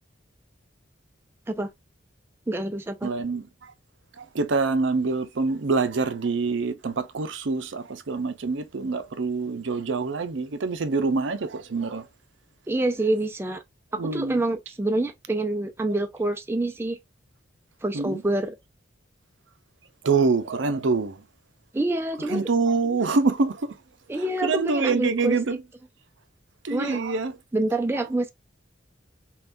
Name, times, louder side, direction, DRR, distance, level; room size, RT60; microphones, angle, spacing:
voice 1, 2.5-3.1 12.7-13.6 13.9-17.0 17.8-18.6 21.7-22.5 24.1-25.4 26.7-27.0 27.5-28.3, right 2 dB, 10° right, 0.3 m, -26 dB
voice 2, 3.0-3.4 4.2-12.0 14.0-14.4 17.9-18.2 20.0-21.2 22.3-23.7 24.4-25.6 26.6-27.3, right 4 dB, 70° right, 0.6 m, -25 dB
5.6 x 2.3 x 2.6 m
head